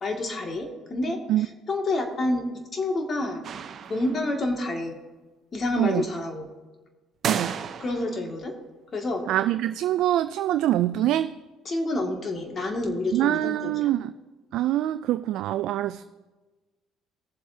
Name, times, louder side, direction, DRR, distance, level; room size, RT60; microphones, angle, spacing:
voice 1, 0.0-2.4 2.7-3.4 3.9-5.0 5.5-6.5 7.8-8.5 8.9-9.2 11.7-13.7, left 2 dB, 40° left, 2 dB, 2.1 m, -28 dB
sound 1, 3.4-4.4 7.2-8.2, right 7 dB, 55° right, 0.7 m, -32 dB
voice 2, 9.3-11.3 13.1-14.1 14.5-16.0, right 13 dB, 70° right, 11 dB, 0.3 m, -24 dB
18.0 x 7.4 x 2.8 m, 1.2 s
supercardioid pair, 70°, 0 cm